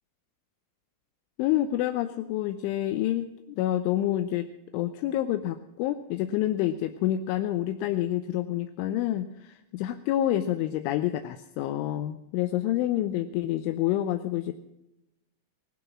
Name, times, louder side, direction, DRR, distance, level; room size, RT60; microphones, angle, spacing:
voice 1, 1.4-3.3 3.6-4.5 4.7-14.5, left 13 dB, 85° left, 9 dB, 3.0 m, -28 dB
17.5 x 12.0 x 6.1 m, 0.90 s
omnidirectional pair, 5.6 m